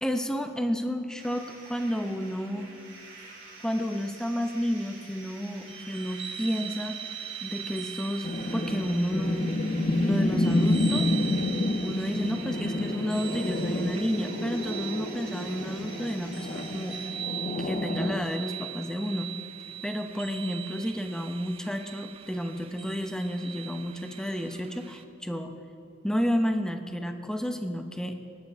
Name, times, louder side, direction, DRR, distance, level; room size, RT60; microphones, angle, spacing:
voice 1, 0.0-2.7 3.6-7.0 7.4-9.6 10.0-11.1 11.8-17.0 17.6-19.3 19.8-25.5 26.0-28.2, equal, 5° left, 6 dB, 0.8 m, -31 dB
sound 1, 1.2-17.1, right 2 dB, 60° right, 3.2 m, -48 dB
sound 2, 5.7-25.0, right 9 dB, 30° right, 0.6 m, -41 dB
sound 3, 8.2-18.2, left 1 dB, 45° left, 0.9 m, -29 dB
19.0 x 11.5 x 3.5 m, 2.8 s
head